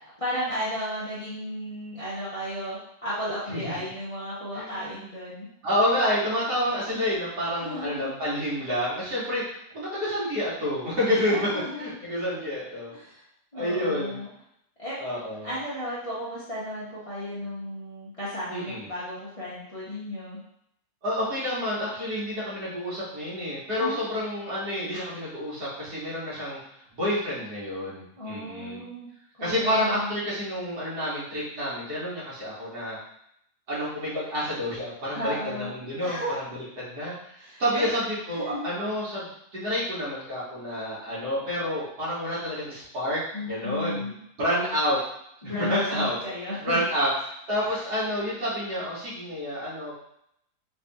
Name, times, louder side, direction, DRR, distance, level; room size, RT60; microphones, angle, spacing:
voice 1, 0.0-5.5 7.6-8.1 11.1-11.9 12.9-13.2 13.5-14.3 14.8-15.0 15.4-20.4 23.8-24.0 28.2-29.1 29.3-30.1 35.1-35.7 36.0-36.3 37.4-37.9 38.3-38.7 43.3-44.2 45.4-46.8, left 1 dB, 30° left, -9 dB, 0.6 m, -34 dB
voice 2, 4.5-5.1 5.6-11.5 11.8-12.9 13.5-14.2 15.0-15.5 18.5-18.9 21.0-26.6 26.9-28.8 29.4-33.0 33.7-44.1 44.4-45.0 45.5-46.2 46.6-47.1 47.5-49.9, equal, 70° right, -10 dB, 2.2 m, -29 dB
4.8 x 2.6 x 2.3 m, 0.74 s
omnidirectional pair, 1.8 m